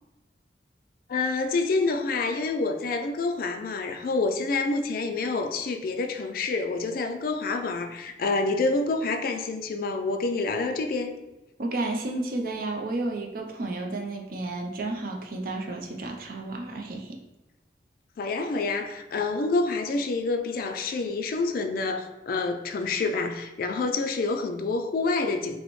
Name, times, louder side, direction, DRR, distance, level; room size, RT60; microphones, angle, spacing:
voice 1, 1.1-11.1 18.2-25.6, left 3 dB, 55° left, 6 dB, 0.3 m, -27 dB
voice 2, 11.6-17.2, right 2 dB, 55° right, 2 dB, 0.5 m, -32 dB
5.1 x 2.1 x 3.0 m, 1.0 s
head